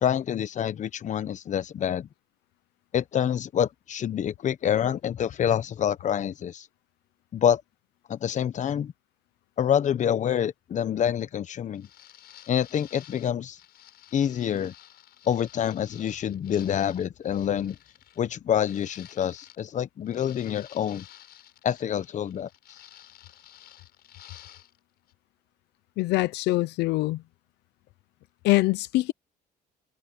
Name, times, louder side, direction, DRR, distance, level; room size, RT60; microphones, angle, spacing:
voice 1, 0.0-2.1 2.9-6.7 7.3-7.6 8.1-8.9 9.6-11.9 12.5-13.6 14.1-14.7 15.3-17.8 18.2-21.0 21.6-22.5, left 9 dB, 45° left, 1.1 m, -27 dB
sound 1, 11.7-19.8 20.1-24.8 25.1-25.2, left 12 dB, 70° left, 6.1 m, -52 dB
voice 2, 26.0-27.2 28.4-29.1, left 19 dB, 85° left, 0.7 m, -24 dB
cardioid pair, 110°, 17 cm